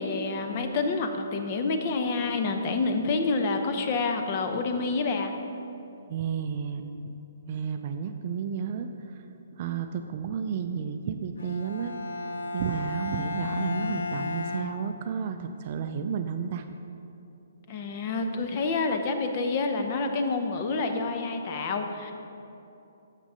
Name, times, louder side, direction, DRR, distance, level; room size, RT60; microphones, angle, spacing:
voice 1, 0.0-5.3 17.7-22.1, left 3 dB, 35° left, 5 dB, 0.7 m, -28 dB
voice 2, 6.1-6.9 7.5-9.2 9.6-11.9 12.5-16.7, right 7 dB, 40° right, 7 dB, 0.4 m, -32 dB
Bowed string instrument, 11.4-15.5, left 3 dB, 80° left, 0.5 m, -34 dB
7.5 x 6.1 x 5.5 m, 2.8 s
hypercardioid pair, 155°, 0 cm